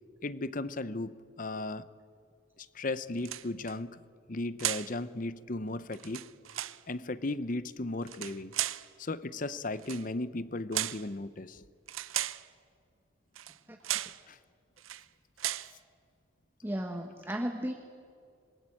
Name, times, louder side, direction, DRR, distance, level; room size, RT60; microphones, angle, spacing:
voice 1, 0.2-1.9 2.6-4.0 4.3-6.3 6.9-8.5 9.0-11.6 14.3-14.4, left 2 dB, 40° left, 15 dB, 0.8 m, -36 dB
sound 1, 3.2-3.7 4.6-4.9 5.9-6.8 8.0-8.9 9.8-10.1 10.7-11.1 11.9-12.5 13.3-13.6 13.8-14.2 14.8-15.0 15.4-15.7, right 13 dB, 85° right, 0.7 m, -35 dB
voice 2, 16.6-17.7, equal, 10° right, 3 dB, 1.3 m, -34 dB
27.0 x 22.0 x 8.7 m, 2.3 s
head